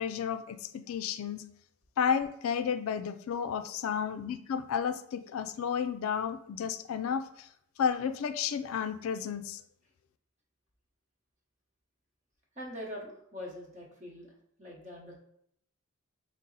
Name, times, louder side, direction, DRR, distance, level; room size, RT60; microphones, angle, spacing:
voice 1, 0.0-1.4 2.0-7.5 7.8-9.6, left 7 dB, 70° left, 9 dB, 0.3 m, -32 dB
voice 2, 12.6-14.3 14.6-15.1, equal, 35° right, -2 dB, 1.0 m, -43 dB
5.3 x 2.0 x 3.8 m, 0.70 s
head